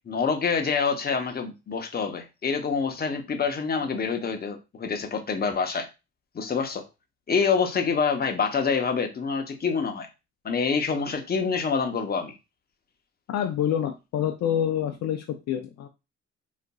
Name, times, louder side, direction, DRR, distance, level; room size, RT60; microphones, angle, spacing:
voice 1, 0.1-5.9 6.3-6.8 7.3-10.1 10.4-12.3, left 5 dB, 30° left, 5 dB, 0.8 m, -26 dB
voice 2, 13.3-15.9, left 9 dB, 60° left, 5 dB, 0.5 m, -27 dB
3.9 x 2.4 x 2.2 m, 0.26 s
cardioid pair, 90°, 30 cm